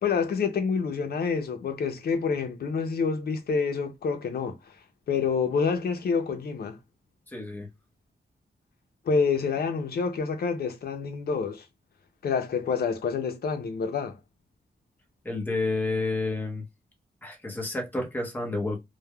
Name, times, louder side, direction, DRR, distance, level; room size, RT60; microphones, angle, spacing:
voice 1, 0.0-4.8 5.1-6.8 9.0-11.7 12.2-14.2, left 5 dB, 70° left, 0.6 m, -27 dB
voice 2, 7.3-7.7 15.2-16.6 17.2-18.8, left 2 dB, 10° left, 0.7 m, -30 dB
3.2 x 2.0 x 2.2 m
wide cardioid pair, 155°, 17 cm